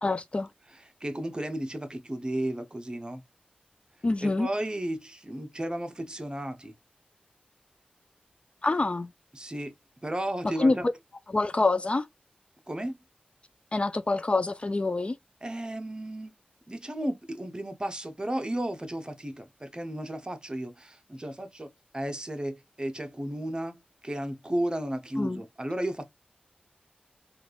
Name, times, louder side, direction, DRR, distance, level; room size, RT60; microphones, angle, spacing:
voice 1, 0.0-0.5 4.0-4.5 8.6-9.1 10.6-10.8 11.3-12.1 13.7-15.2 25.2-25.4, left 2 dB, 35° left, 0.4 m, -26 dB
voice 2, 0.7-3.2 4.2-6.7 9.3-9.7 10.0-10.9 12.7-13.0 15.4-16.3 16.7-26.1, right 1 dB, 25° right, 0.8 m, -34 dB
3.4 x 2.4 x 2.4 m
cardioid pair, 45°, 3 cm